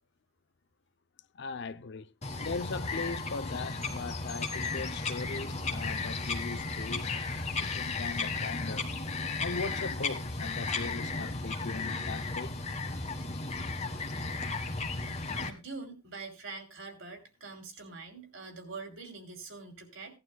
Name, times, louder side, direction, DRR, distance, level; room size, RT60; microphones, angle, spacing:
voice 1, 1.3-7.1 7.6-8.9 9.4-12.5, left 4 dB, 55° left, 0.6 m, -39 dB
Bird vocalization bird call bird song, 2.2-15.5, left 3 dB, 30° left, 1.5 m, -34 dB
voice 2, 15.3-20.2, right 4 dB, 60° right, 2.9 m, -44 dB
17.5 x 11.5 x 2.2 m
head